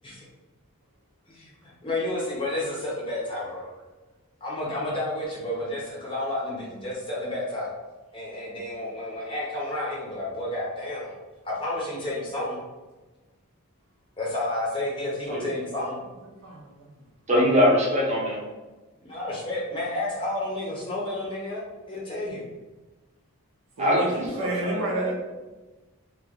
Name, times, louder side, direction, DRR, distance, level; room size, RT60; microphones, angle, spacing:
voice 1, 1.3-3.7 4.4-7.7 8.1-11.1 11.4-12.6 14.2-16.0 19.0-22.4, left 1 dB, 25° left, -5 dB, 0.6 m, -31 dB
voice 2, 16.4-17.0 23.8-25.1, right 2 dB, 65° right, -3 dB, 0.6 m, -31 dB
voice 3, 17.3-18.4 23.8-25.1, equal, 30° right, -4 dB, 0.7 m, -22 dB
2.9 x 2.3 x 3.6 m, 1.2 s
head